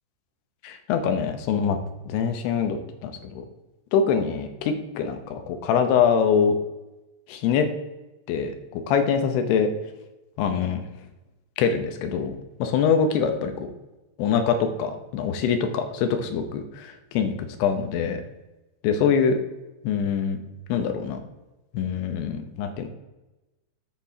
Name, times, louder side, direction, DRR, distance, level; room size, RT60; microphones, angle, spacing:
voice 1, 0.6-1.8 2.0-3.3 3.9-6.6 7.3-7.7 8.3-9.7 10.4-10.8 11.6-13.7 14.2-17.3 17.6-18.2 18.8-19.4 19.8-20.4 20.7-21.2 21.7-22.9, left 6 dB, 75° left, 6 dB, 2.6 m, -24 dB
13.5 x 6.1 x 2.8 m, 1.0 s
omnidirectional pair, 5.3 m